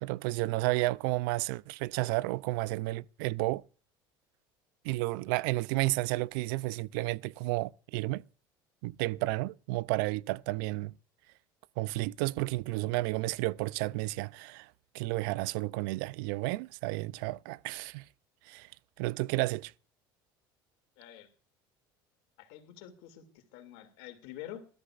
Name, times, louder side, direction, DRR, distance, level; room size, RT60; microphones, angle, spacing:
voice 1, 0.0-3.6 4.8-8.2 8.8-10.9 11.8-14.7 14.9-18.0 18.5-18.7 19.0-19.7, right 20 dB, 75° right, 0.5 m, -32 dB
voice 2, 21.0-21.3 22.4-24.7, left 11 dB, 75° left, 2.6 m, -47 dB
21.0 x 13.5 x 2.5 m
hypercardioid pair, 80°, 11 cm